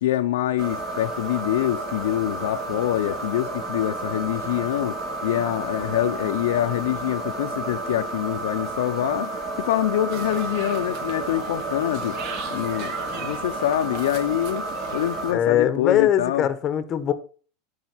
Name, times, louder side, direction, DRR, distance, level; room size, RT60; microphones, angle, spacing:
voice 1, 0.0-5.0 5.2-12.2 12.5-12.9 13.2-14.7 14.9-16.5, left 13 dB, 90° left, 0.7 m, -25 dB
sound 1, 0.6-15.3, right 2 dB, 35° right, 4.6 m, -31 dB
sound 2, 10.1-15.2, right 5 dB, 55° right, 2.4 m, -38 dB
voice 2, 15.3-17.1, left 10 dB, 30° left, 1.1 m, -21 dB
12.0 x 5.2 x 6.1 m
supercardioid pair, 145°, 0 cm